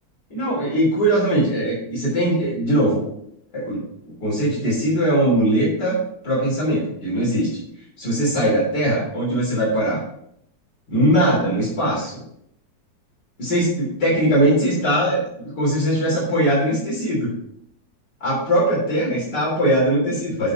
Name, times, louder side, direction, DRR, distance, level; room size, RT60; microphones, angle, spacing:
voice 1, 0.3-3.1 3.5-6.0 6.2-7.6 8.0-10.0 10.9-12.2 13.4-17.3 18.2-20.5, right 1 dB, 60° left, -5 dB, 4.1 m, -20 dB
9.9 x 6.2 x 5.3 m, 0.72 s
omnidirectional pair, 2.1 m